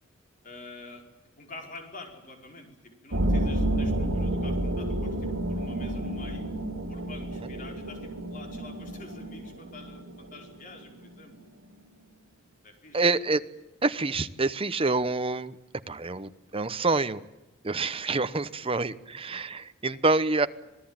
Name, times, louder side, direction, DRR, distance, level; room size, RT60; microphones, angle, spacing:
voice 1, 0.4-1.0 1.4-6.4 6.9-11.4 12.6-13.0 18.1-18.4, left 2 dB, 40° left, 3 dB, 5.0 m, -47 dB
sound 1, 3.1-11.6, right 1 dB, 80° right, 3.0 m, -30 dB
voice 2, 12.9-13.4 13.8-15.6 15.9-17.2 17.6-20.5, right 3 dB, 30° right, 12 dB, 0.9 m, -27 dB
26.0 x 18.0 x 9.0 m, 1.0 s
head